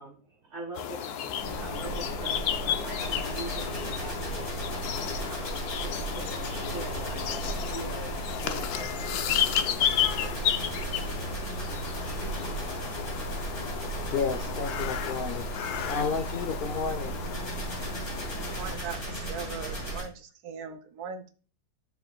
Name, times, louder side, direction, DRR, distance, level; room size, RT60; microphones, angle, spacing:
voice 1, 0.0-12.3, right 2 dB, 55° right, -4 dB, 1.7 m, -44 dB
sound 1, 0.7-18.8, left 9 dB, 90° left, 1.2 m, -33 dB
sound 2, 1.4-20.0, right 2 dB, 40° left, 3.1 m, -35 dB
voice 2, 14.0-15.4 15.9-17.1, left 5 dB, 75° left, 4 dB, 0.5 m, -31 dB
voice 3, 18.5-21.3, right 6 dB, 80° right, 8 dB, 1.3 m, -40 dB
12.5 x 4.6 x 2.2 m, 0.37 s
omnidirectional pair, 1.6 m